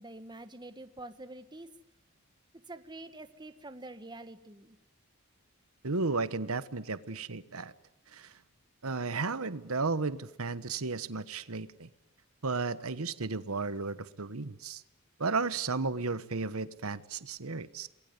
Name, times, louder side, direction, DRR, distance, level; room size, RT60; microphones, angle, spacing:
voice 1, 0.0-1.7 2.7-4.8, right 2 dB, 20° right, 10 dB, 1.5 m, -46 dB
voice 2, 5.8-7.7 8.1-8.3 8.8-11.9 12.4-14.8 15.2-17.9, right 4 dB, 75° right, 14 dB, 1.2 m, -34 dB
27.5 x 21.5 x 9.6 m, 0.88 s
head